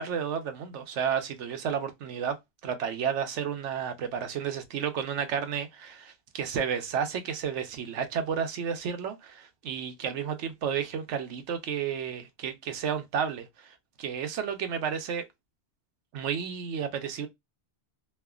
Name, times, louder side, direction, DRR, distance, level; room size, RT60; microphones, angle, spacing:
voice 1, 0.0-15.2 16.1-17.3, right 7 dB, 85° right, 1.0 m, -32 dB
3.2 x 2.1 x 2.3 m
omnidirectional pair, 1.2 m